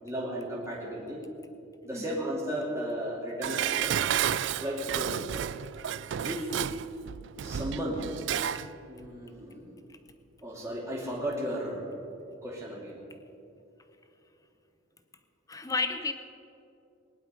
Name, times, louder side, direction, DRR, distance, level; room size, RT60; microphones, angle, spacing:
voice 1, 0.0-1.2 1.8-4.2 4.6-5.3 6.2-6.7 7.4-8.1 8.9-9.7 10.4-12.0 12.4-12.9, equal, 15° right, -5 dB, 2.5 m, -35 dB
Dishes pots and pans, 3.4-8.7 9.0-9.1, right 9 dB, 55° right, 0.3 m, -31 dB
voice 2, 15.5-16.1, left 3 dB, 15° left, 9 dB, 0.8 m, -32 dB
21.0 x 11.0 x 5.4 m, 2.8 s
head